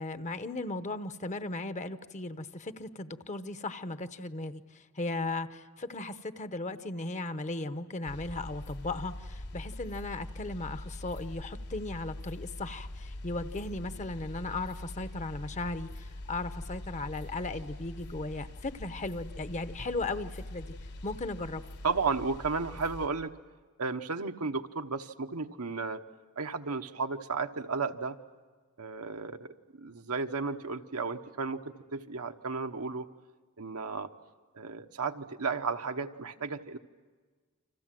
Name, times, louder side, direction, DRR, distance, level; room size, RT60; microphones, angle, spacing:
voice 1, 0.0-20.7 21.0-21.6, left 2 dB, 35° left, 11 dB, 0.9 m, -37 dB
sound 1, 8.0-23.1, left 1 dB, 85° left, 4.2 m, -43 dB
voice 2, 21.8-23.3 23.8-26.0 26.4-28.2 28.8-33.1 33.6-34.1 34.5-36.8, right 4 dB, 80° right, 6 dB, 1.1 m, -33 dB
29.5 x 26.0 x 7.6 m, 1.4 s
head